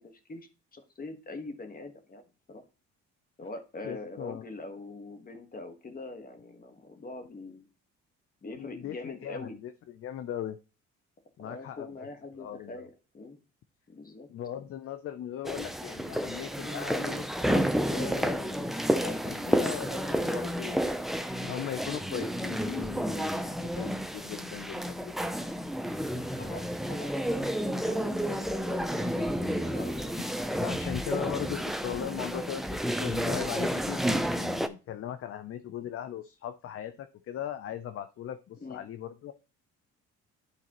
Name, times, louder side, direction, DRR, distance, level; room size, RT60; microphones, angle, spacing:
voice 1, 0.0-2.2 2.5-2.6 3.4-7.7 8.4-9.6 11.4-13.4 13.9-14.3 26.4-27.2 27.6-30.2 38.6-38.8, left 2 dB, 30° left, 6 dB, 1.4 m, -43 dB
voice 2, 3.8-4.4 8.6-10.6 11.4-12.1 12.4-12.9 14.3-20.9 21.4-25.1 30.6-39.3, left 10 dB, 50° left, 11 dB, 0.5 m, -39 dB
sound 1, 15.5-34.7, equal, ahead, 0.5 m, -31 dB
11.0 x 4.0 x 3.0 m, 0.33 s
cardioid pair, 90°, 30 cm